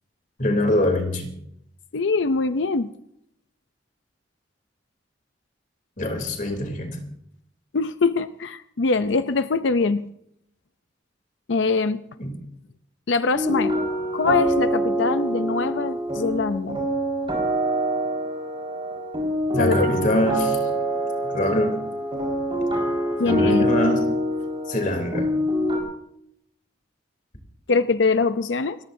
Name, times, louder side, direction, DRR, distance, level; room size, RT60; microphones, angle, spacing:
voice 1, 0.4-1.3 6.0-7.0 12.2-12.4 19.5-20.6 21.3-21.8 23.2-24.0 24.7-25.3, left 1 dB, 45° left, 3 dB, 3.2 m, -24 dB
voice 2, 1.9-2.9 7.7-10.0 11.5-12.0 13.1-13.7 14.1-16.8 19.6-19.9 23.2-23.7 27.7-28.8, left 4 dB, 80° left, 11 dB, 0.6 m, -23 dB
sound 1, 13.3-25.8, equal, 30° right, 4.8 m, -25 dB
29.5 x 15.0 x 2.7 m, 0.73 s
head